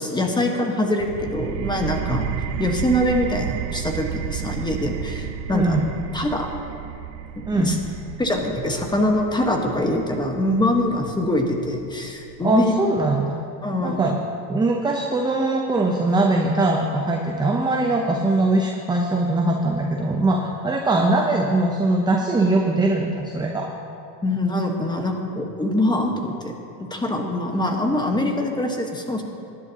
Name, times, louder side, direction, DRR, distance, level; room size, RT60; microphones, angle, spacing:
voice 1, 0.0-2.3 2.6-5.8 6.1-6.5 7.4-7.8 8.2-12.7 13.6-14.0 24.2-26.5 26.8-29.2, left 1 dB, 10° left, 2 dB, 1.2 m, -23 dB
sound 1, 1.0-12.4, right 10 dB, 85° right, 0.8 m, -32 dB
voice 2, 5.5-5.9 7.5-7.8 12.4-13.4 13.8-14.2 14.5-23.7, right 2 dB, 10° right, 0 dB, 0.6 m, -21 dB
18.5 x 11.0 x 2.8 m, 2.6 s
supercardioid pair, 125°, 49 cm